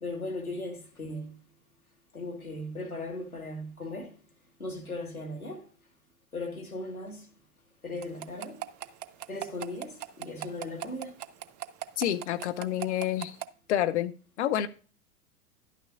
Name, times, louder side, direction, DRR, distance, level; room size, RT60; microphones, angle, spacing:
voice 1, 0.0-1.4 2.1-4.2 4.6-5.7 6.3-7.3 7.8-8.6 9.3-11.2, left 2 dB, 90° left, 1.8 m, -38 dB
sound 1, 8.0-13.5, right 13 dB, 30° right, 0.5 m, -37 dB
voice 2, 12.0-13.4 13.7-14.1 14.4-14.7, left 11 dB, 55° left, 0.7 m, -28 dB
11.0 x 9.1 x 2.5 m
figure-of-eight pair, 95°, 42 cm